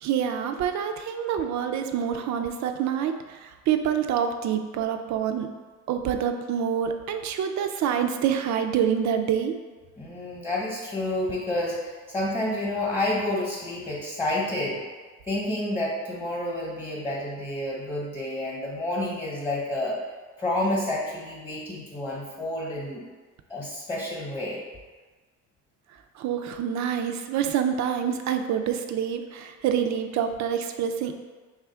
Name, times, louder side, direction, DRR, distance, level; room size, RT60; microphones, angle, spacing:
voice 1, 0.0-5.5 5.9-9.6 26.2-31.2, right 8 dB, 65° right, 7 dB, 0.4 m, -26 dB
voice 2, 10.0-14.8 15.3-20.0 20.4-23.0 23.5-24.6, left 1 dB, 15° left, -4 dB, 0.9 m, -29 dB
3.2 x 2.4 x 4.3 m, 1.3 s
cardioid pair, 90°, 30 cm